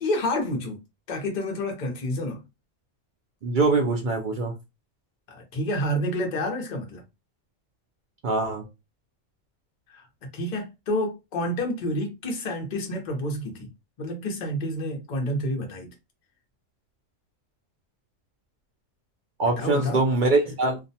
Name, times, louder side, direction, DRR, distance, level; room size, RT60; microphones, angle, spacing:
voice 1, 0.0-0.8 1.1-2.4 5.3-7.0 9.9-10.1 10.3-13.7 14.0-15.9 19.6-20.0, left 1 dB, 45° left, 0.7 m, -29 dB
voice 2, 3.4-4.5 8.2-8.6 19.4-20.8, right 3 dB, 65° right, 0.4 m, -23 dB
2.4 x 2.1 x 2.7 m
omnidirectional pair, 1.4 m